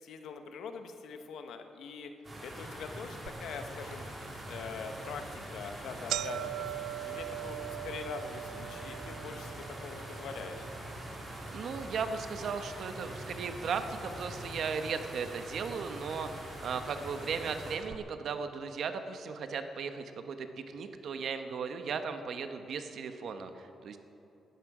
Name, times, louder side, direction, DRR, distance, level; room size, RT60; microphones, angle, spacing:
voice 1, 0.0-2.1 2.4-4.0 4.4-6.7 7.0-10.7 17.2-17.4, left 5 dB, 75° left, 7 dB, 1.2 m, -43 dB
sound 1, 2.2-17.8, right 1 dB, 20° right, 3.4 m, -44 dB
sound 2, 3.3-3.4 3.9-4.0 4.8-5.0 5.4-5.5 5.7-13.9 14.2-14.9 15.7-15.8 16.8-16.9 17.2-17.3 17.8-18.0, right 14 dB, 90° right, 0.3 m, -42 dB
voice 2, 11.5-20.5 20.7-24.0, right 5 dB, 55° right, 8 dB, 1.0 m, -36 dB
18.0 x 12.5 x 4.9 m, 2.9 s
cardioid pair, 160°, 0 cm